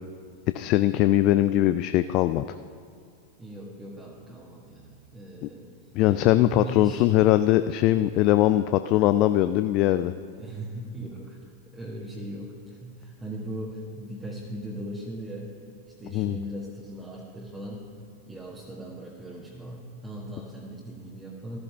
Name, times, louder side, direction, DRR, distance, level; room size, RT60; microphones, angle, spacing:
voice 1, 0.5-2.5 6.0-10.1 16.1-16.4, left 14 dB, 40° left, 11 dB, 0.3 m, -21 dB
voice 2, 3.4-5.7 6.0-7.2 7.9-8.1 10.3-11.4 11.6-15.5 16.0-17.8 18.3-21.6, right 1 dB, 10° right, -4 dB, 1.5 m, -38 dB
14.5 x 13.0 x 3.4 m, 2.1 s
figure-of-eight pair, 90°, 0 cm